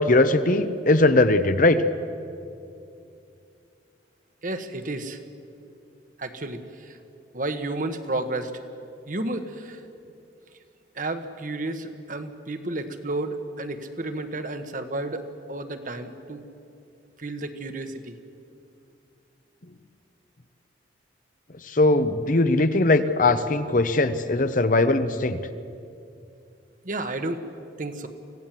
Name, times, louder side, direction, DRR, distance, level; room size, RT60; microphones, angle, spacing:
voice 1, 0.0-1.8 21.7-25.4, left 2 dB, 45° left, 11 dB, 0.8 m, -20 dB
voice 2, 4.4-5.2 6.2-7.0 7.3-8.5 9.1-9.8 10.9-16.5 17.2-18.2 26.8-27.4 27.8-28.1, right 2 dB, 45° right, 8 dB, 1.3 m, -32 dB
25.0 x 16.5 x 7.6 m, 2.6 s
head